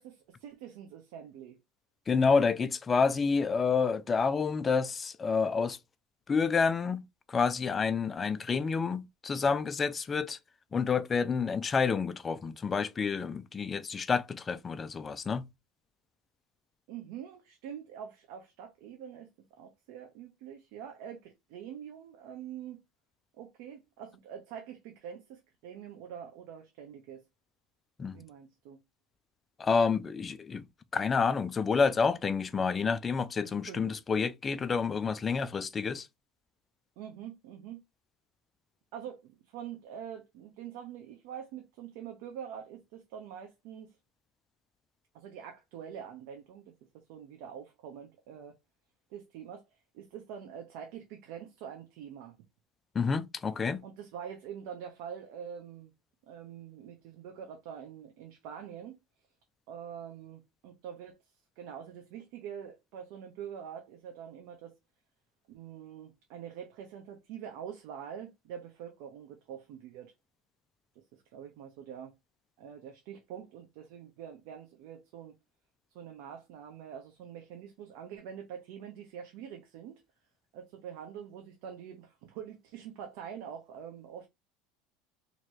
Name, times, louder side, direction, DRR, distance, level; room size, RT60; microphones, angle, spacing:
voice 1, 0.0-1.6 16.9-19.3 19.6-22.8 23.4-27.2 28.1-28.8 33.7-33.9 37.0-37.8 38.9-43.9 45.1-48.5 49.1-49.6 49.9-52.3 53.8-55.9 56.3-59.0 59.7-61.2 61.6-64.7 65.5-70.1 71.1-72.1 72.6-75.4 75.9-80.0 80.5-84.3, right 8 dB, 70° right, 0.9 m, -45 dB
voice 2, 2.1-5.8 6.3-10.4 10.7-15.5 28.0-28.2 29.6-30.7 30.9-36.1 52.9-53.8, left 5 dB, 20° left, 0.4 m, -29 dB
2.9 x 2.9 x 4.5 m
supercardioid pair, 135°, 0 cm